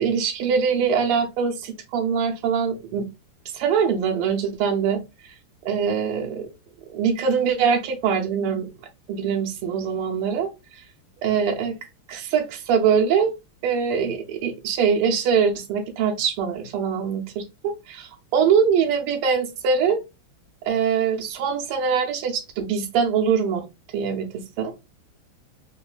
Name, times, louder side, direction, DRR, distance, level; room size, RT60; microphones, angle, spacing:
voice 1, 0.0-3.1 3.5-5.0 5.6-6.5 6.9-8.7 9.1-10.5 11.2-11.7 12.1-13.3 13.6-20.0 20.6-23.6 23.9-24.7, right 6 dB, 85° right, 1.7 m, -23 dB
4.0 x 2.9 x 2.3 m
omnidirectional pair, 2.4 m